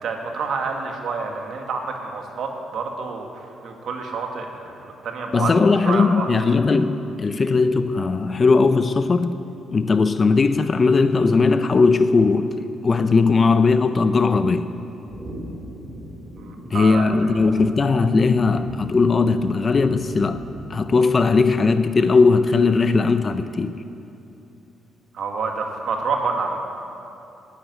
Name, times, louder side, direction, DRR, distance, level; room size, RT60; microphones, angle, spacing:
voice 1, 0.0-4.5 4.8-5.5 5.8-6.3 16.4-17.0 25.1-26.6, right 4 dB, 65° right, 1.8 m, -28 dB
voice 2, 5.3-9.4 9.7-14.7 16.7-20.4 20.7-23.8, left 4 dB, 35° left, 0.6 m, -18 dB
sound 1, 15.1-21.8, equal, 25° right, 3.2 m, -39 dB
10.5 x 10.5 x 9.2 m
cardioid pair, 90°, 0 cm